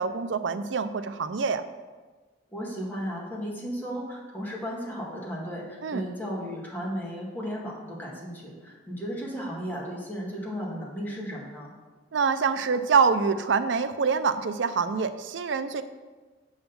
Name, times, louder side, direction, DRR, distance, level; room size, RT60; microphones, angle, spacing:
voice 1, 0.0-1.6 5.8-6.0 12.1-15.8, right 5 dB, 90° right, 11 dB, 0.5 m, -25 dB
voice 2, 2.5-11.7, equal, 10° left, -4 dB, 1.7 m, -35 dB
7.8 x 4.0 x 6.8 m, 1.3 s
head